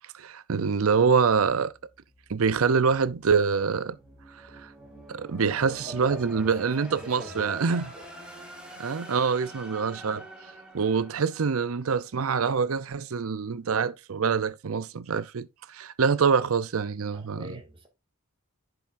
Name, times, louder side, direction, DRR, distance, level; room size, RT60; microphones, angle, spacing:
voice 1, 0.2-1.7 2.3-4.0 4.6-4.7 5.1-7.9 8.8-10.2 10.7-15.5 15.7-17.6, right 5 dB, 70° right, 0.6 m, -25 dB
sound 1, 1.7-12.3, right 1 dB, 5° right, 2.7 m, -47 dB
voice 2, 5.6-6.5 7.0-8.1 17.1-17.9, right 1 dB, 25° right, 2.2 m, -42 dB
10.5 x 6.9 x 2.6 m
head